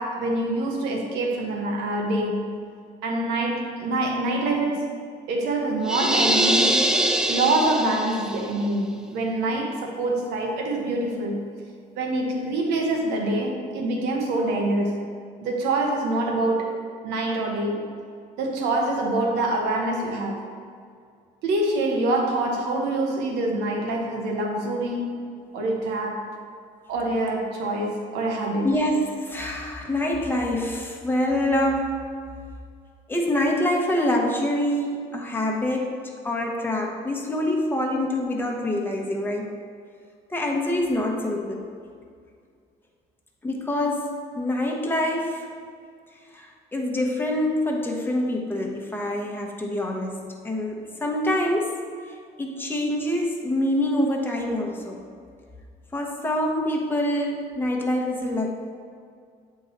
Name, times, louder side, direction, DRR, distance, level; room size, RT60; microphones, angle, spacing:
voice 1, 0.0-2.6 3.0-4.9 5.3-6.8 7.3-11.4 12.0-15.1 15.4-16.7 17.0-17.9 18.4-20.5 21.4-26.3 26.9-28.8, right 2 dB, 90° right, 0 dB, 1.1 m, -25 dB
sound 1, 5.9-8.4, right 1 dB, 5° right, 0.3 m, -23 dB
voice 2, 28.6-32.0 33.1-35.9 36.2-39.5 40.3-41.6 43.4-45.5 46.3-51.8 52.4-55.0 55.9-58.5, left 1 dB, 10° left, 0 dB, 1.0 m, -25 dB
8.0 x 3.8 x 4.0 m, 2.2 s
cardioid pair, 110°, 17 cm